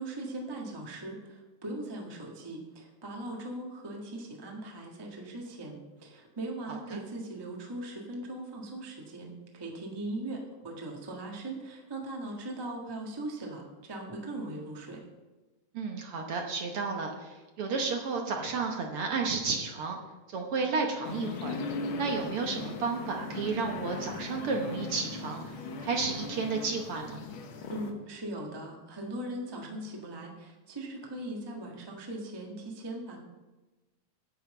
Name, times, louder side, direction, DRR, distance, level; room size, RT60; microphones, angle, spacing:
voice 1, 0.0-15.0 27.6-33.2, right 1 dB, 25° right, -1 dB, 0.5 m, -39 dB
voice 2, 6.7-7.0 15.7-20.0 20.3-21.5 22.0-25.4 25.8-27.2, right 4 dB, 65° right, 2 dB, 1.6 m, -32 dB
sound 1, 21.0-27.9, left 4 dB, 60° left, 1.4 m, -38 dB
9.1 x 5.5 x 8.2 m, 1.2 s
omnidirectional pair, 3.3 m